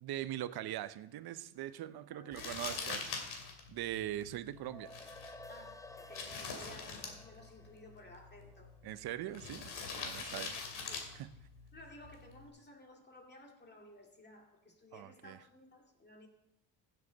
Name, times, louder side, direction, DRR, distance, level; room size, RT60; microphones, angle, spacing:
voice 1, 0.0-3.1 3.7-4.9 8.8-9.7 10.0-10.5 11.1-11.3 14.9-15.4, right 13 dB, 60° right, 14 dB, 0.7 m, -41 dB
voice 2, 2.1-3.1 5.5-8.7 10.0-11.1 11.7-16.3, left 1 dB, 25° left, 2 dB, 2.3 m, -56 dB
Crumpling crinkling, 2.3-12.5, left 5 dB, 65° left, 2.6 m, -45 dB
sound 1, 4.6-9.1, left 2 dB, 10° left, 0.6 m, -54 dB
15.5 x 7.6 x 4.0 m, 0.85 s
cardioid pair, 100°, 43 cm